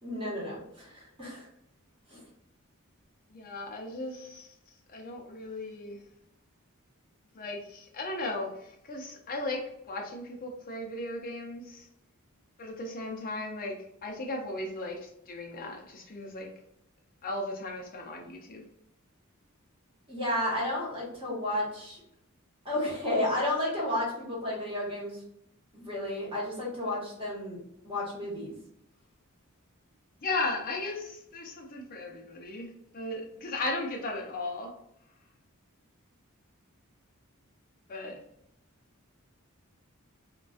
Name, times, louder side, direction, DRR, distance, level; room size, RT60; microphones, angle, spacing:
voice 1, 0.0-1.5 2.1-2.2 20.1-22.0 22.6-25.2 25.7-27.6 27.8-28.5, left 1 dB, 25° right, -5 dB, 1.1 m, -32 dB
voice 2, 3.3-4.5 4.9-6.0 7.3-8.5 8.9-11.9 12.6-13.8 14.0-16.5 17.2-18.6 30.2-34.7 37.9-38.1, left 2 dB, 45° left, 2 dB, 0.5 m, -36 dB
2.4 x 2.2 x 2.4 m, 0.76 s
head